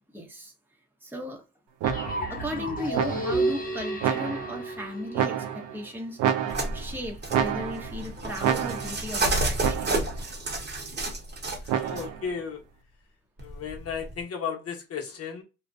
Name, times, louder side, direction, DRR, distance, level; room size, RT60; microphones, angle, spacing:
voice 1, 0.1-0.5 1.0-1.4 2.3-6.2 6.7-10.3, equal, 5° right, 0.8 m, -36 dB
sound 1, 1.8-5.8, right 1 dB, 30° left, 0.6 m, -31 dB
sound 2, 1.8-2.4 2.9-3.5 4.0-4.7 5.1-5.8 6.2-6.9 7.3-8.0 8.4-9.1 9.6-10.2 11.7-12.3, right 9 dB, 90° right, 0.5 m, -29 dB
sound 3, 6.5-12.1 13.4-14.2, right 2 dB, 35° right, 0.9 m, -31 dB
voice 2, 11.6-12.6 13.4-15.4, left 6 dB, 50° left, 0.9 m, -34 dB
2.4 x 2.1 x 2.4 m
cardioid pair, 90°, 30 cm